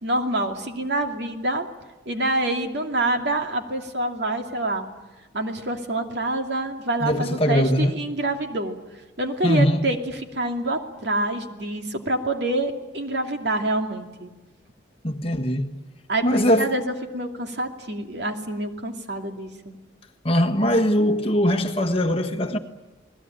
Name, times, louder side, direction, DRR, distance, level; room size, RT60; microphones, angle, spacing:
voice 1, 0.0-1.7 2.1-4.9 5.3-8.8 9.2-14.3 16.1-19.7, right 1 dB, 65° right, 2.6 m, -26 dB
voice 2, 7.0-7.9 9.4-9.8 11.8-11.9 15.0-15.7 16.2-16.8 20.2-22.6, equal, 30° left, 1.6 m, -21 dB
30.0 x 20.0 x 9.0 m
head